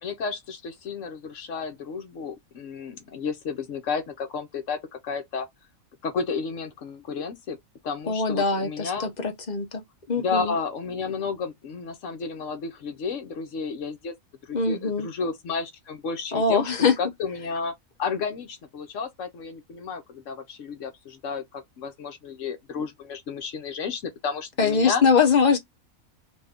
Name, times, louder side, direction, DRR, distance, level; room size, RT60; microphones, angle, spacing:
voice 1, 0.0-5.5 6.0-7.6 7.8-9.1 10.2-14.1 14.4-17.7 18.0-25.0, left 5 dB, 70° left, 1.0 m, -32 dB
voice 2, 8.1-9.8 10.1-10.6 14.5-15.1 16.3-16.9 24.6-25.6, left 5 dB, 40° left, 0.8 m, -22 dB
2.6 x 2.6 x 3.4 m
omnidirectional pair, 1.4 m